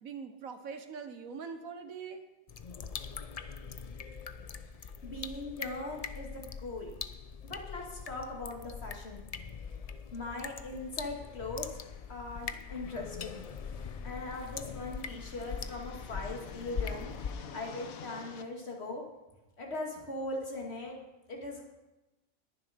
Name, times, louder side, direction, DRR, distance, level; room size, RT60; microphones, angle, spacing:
voice 1, 0.0-2.3, right 6 dB, 85° right, 8 dB, 1.6 m, -42 dB
sound 1, 2.5-17.3, left 6 dB, 65° left, 0.3 m, -42 dB
voice 2, 4.8-6.9 7.5-9.3 10.1-11.8 12.1-13.4 14.0-19.0 19.6-21.0 21.3-21.6, left 2 dB, 50° left, 0 dB, 2.5 m, -40 dB
sound 2, 11.2-18.4, left 6 dB, 90° left, 1.3 m, -50 dB
20.5 x 7.3 x 5.1 m, 1.0 s
omnidirectional pair, 1.4 m